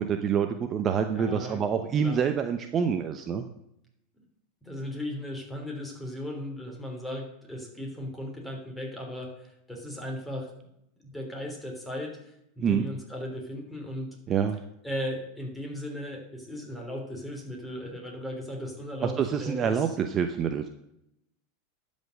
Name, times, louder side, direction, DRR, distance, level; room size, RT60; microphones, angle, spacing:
voice 1, 0.0-3.4 12.6-12.9 14.3-14.6 19.0-20.7, right 7 dB, 30° right, 7 dB, 0.8 m, -26 dB
voice 2, 1.1-1.6 2.0-2.2 4.2-4.3 4.6-10.5 11.1-14.1 14.8-20.0, left 1 dB, 5° left, 1 dB, 3.4 m, -37 dB
12.0 x 5.3 x 6.5 m, 0.80 s
hypercardioid pair, 115°, 0 cm